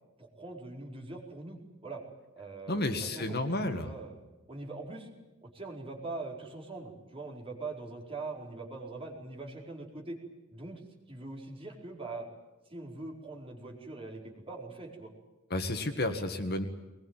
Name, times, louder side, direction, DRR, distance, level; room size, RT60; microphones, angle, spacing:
voice 1, 0.2-2.0 2.3-4.2 4.5-5.1 5.4-10.2 10.5-10.8 11.1-12.3 12.6-15.1, right 3 dB, 25° right, -1 dB, 4.7 m, -42 dB
voice 2, 2.7-3.9 15.5-16.7, left 1 dB, 50° left, 7 dB, 1.9 m, -31 dB
22.0 x 21.0 x 9.1 m, 1.1 s
head